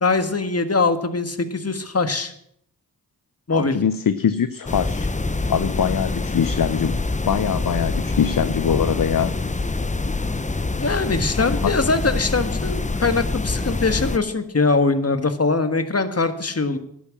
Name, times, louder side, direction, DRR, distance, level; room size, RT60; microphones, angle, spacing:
voice 1, 0.0-2.3 3.5-3.8 10.8-16.8, left 3 dB, 40° left, 9 dB, 1.5 m, -22 dB
voice 2, 3.5-5.1 5.5-7.0 7.3-9.4 11.4-11.7, left 8 dB, 55° left, 13 dB, 0.7 m, -23 dB
sound 1, 4.7-14.2, left 3 dB, 20° left, 0.7 m, -25 dB
11.5 x 8.6 x 7.4 m, 0.71 s
cardioid pair, 45°, 40 cm